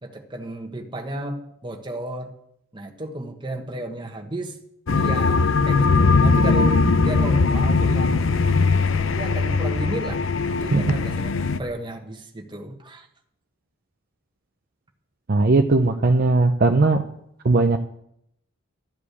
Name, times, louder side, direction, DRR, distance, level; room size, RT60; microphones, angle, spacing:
voice 1, 0.0-2.3 2.7-4.6 5.0-8.3 9.1-10.3 10.5-13.1, right 1 dB, 25° right, 2 dB, 1.4 m, -33 dB
sound 1, 4.9-11.6, left 4 dB, 70° left, 0.6 m, -20 dB
voice 2, 15.3-17.0 17.4-17.8, right 3 dB, 45° right, 5 dB, 0.6 m, -18 dB
13.5 x 5.0 x 8.2 m, 0.74 s
head